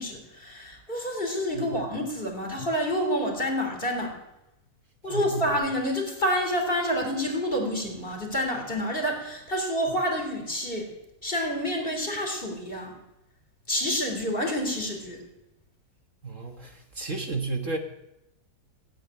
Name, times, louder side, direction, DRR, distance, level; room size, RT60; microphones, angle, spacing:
voice 1, 0.0-4.2 5.0-10.9 11.2-13.0 13.7-15.2, equal, 30° left, 3 dB, 3.7 m, -28 dB
voice 2, 5.1-5.5 16.2-17.8, right 3 dB, 50° right, 4 dB, 1.8 m, -32 dB
17.0 x 8.5 x 9.7 m, 0.88 s
omnidirectional pair, 1.8 m